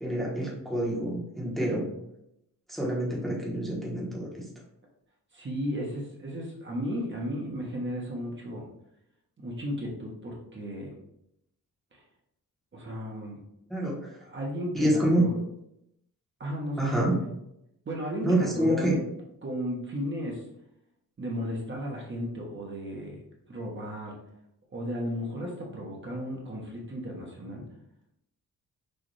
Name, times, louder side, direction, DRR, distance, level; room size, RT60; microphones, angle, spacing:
voice 1, 0.0-1.9 2.7-4.5 13.7-14.2 14.7-15.2 16.8-17.1 18.2-18.9, right 1 dB, ahead, -4 dB, 1.0 m, -27 dB
voice 2, 5.3-8.6 9.4-10.9 11.9-12.0 12.7-13.4 14.3-15.4 16.4-17.2 17.8-19.0 19.4-20.4 21.2-23.2 23.5-24.2 24.7-27.6, equal, 35° right, -2 dB, 0.9 m, -34 dB
6.3 x 2.4 x 3.2 m, 0.81 s
wide cardioid pair, 155°, 34 cm